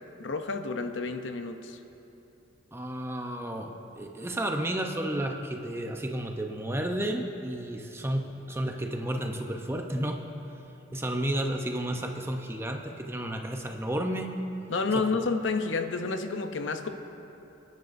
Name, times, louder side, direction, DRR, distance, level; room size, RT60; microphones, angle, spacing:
voice 1, 0.2-1.8 14.7-16.9, left 4 dB, 75° left, 7 dB, 0.7 m, -30 dB
voice 2, 2.7-10.2 10.9-14.3 14.9-15.1, right 1 dB, 15° right, 3 dB, 0.7 m, -32 dB
26.0 x 10.5 x 2.6 m, 2.9 s
head